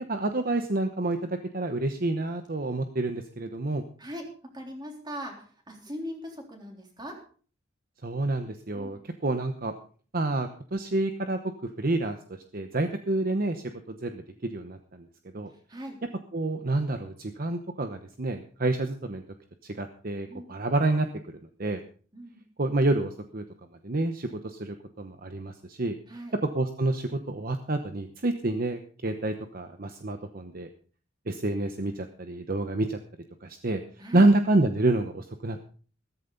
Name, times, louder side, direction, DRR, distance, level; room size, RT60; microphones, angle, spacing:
voice 1, 0.0-3.8 8.0-9.7 10.1-12.2 12.5-15.1 15.3-15.5 16.3-19.2 19.6-21.8 22.6-23.4 23.8-26.0 26.5-30.7 31.3-33.0 33.4-33.8 34.1-35.7, right 2 dB, 45° right, 7 dB, 1.0 m, -28 dB
voice 2, 4.5-7.2 8.7-8.9 15.7-16.0 20.3-20.5 22.1-22.4 26.1-26.3 34.0-34.3, equal, 20° right, 2 dB, 3.5 m, -40 dB
15.0 x 14.0 x 3.9 m, 0.42 s
head